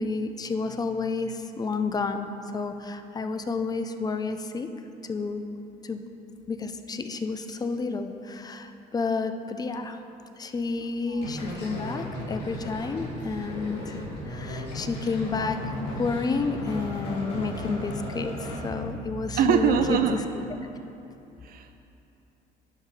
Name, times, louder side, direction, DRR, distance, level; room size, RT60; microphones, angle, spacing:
voice 1, 0.0-2.3 2.5-4.7 5.0-5.5 5.8-6.0 6.5-10.0 10.4-14.0 14.2-15.6 15.9-20.2, left 4 dB, 25° left, 8 dB, 0.5 m, -30 dB
sound 1, 11.2-19.9, left 1 dB, 85° left, 1.8 m, -35 dB
voice 2, 19.4-20.2 21.4-21.8, right 8 dB, 60° right, 8 dB, 0.4 m, -23 dB
11.0 x 5.5 x 4.1 m, 2.8 s
cardioid pair, 110°, 17 cm